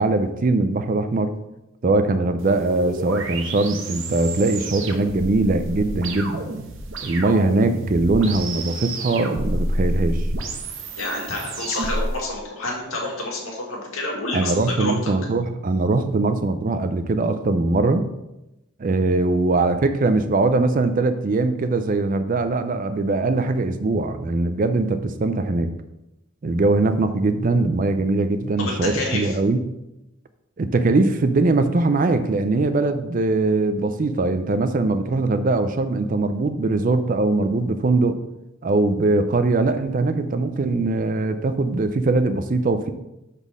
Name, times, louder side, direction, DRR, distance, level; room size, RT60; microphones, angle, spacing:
voice 1, 0.0-1.3 1.8-6.5 7.0-10.3 14.3-18.1 18.8-25.7 26.4-29.6 30.6-38.2 38.6-42.9, right 2 dB, 40° right, 10 dB, 0.4 m, -21 dB
sound 1, 2.4-12.1, right 1 dB, 60° right, 0.8 m, -29 dB
voice 2, 11.0-15.1 28.6-29.4, left 2 dB, 70° left, -2 dB, 1.9 m, -28 dB
5.4 x 4.1 x 6.1 m, 0.92 s
head